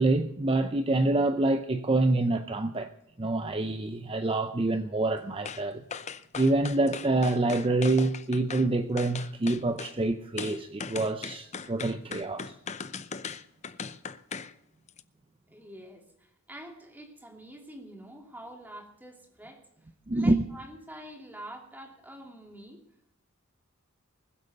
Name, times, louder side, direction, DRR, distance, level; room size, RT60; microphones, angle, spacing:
voice 1, 0.0-2.9 3.2-5.8 6.4-12.5 20.1-20.4, right 2 dB, 25° right, 0.6 m, -26 dB
sound 1, 5.4-5.6 5.9-8.7 9.0-9.9 10.4-14.5 14.9-15.0, left 5 dB, 30° left, 0.6 m, -38 dB
voice 2, 15.5-22.8, right 1 dB, 10° right, 2.7 m, -46 dB
21.0 x 8.0 x 6.5 m
head